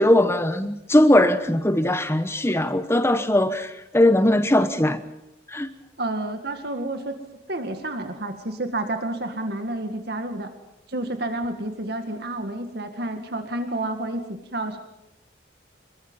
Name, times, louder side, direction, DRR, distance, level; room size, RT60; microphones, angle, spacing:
voice 1, 0.0-5.0 5.5-5.7, left 1 dB, 15° left, 1.0 m, -20 dB
voice 2, 6.0-7.2 7.5-10.5 10.9-14.2 14.5-14.8, right 1 dB, 55° right, 2.0 m, -29 dB
26.5 x 22.5 x 5.6 m
head